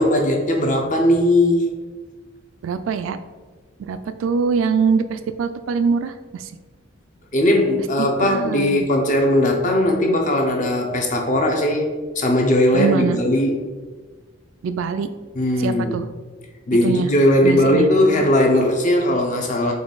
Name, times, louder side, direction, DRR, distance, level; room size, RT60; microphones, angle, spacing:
voice 1, 0.0-1.7 7.3-11.9 12.2-13.6 15.4-16.0 16.7-19.7, left 1 dB, 40° left, 2 dB, 0.6 m, -18 dB
voice 2, 2.6-3.2 3.9-6.5 8.2-8.9 12.7-13.2 14.6-15.1 15.6-16.0 16.8-17.1 17.4-17.9, right 5 dB, 85° right, 10 dB, 0.3 m, -23 dB
3.9 x 3.1 x 3.9 m, 1.4 s
head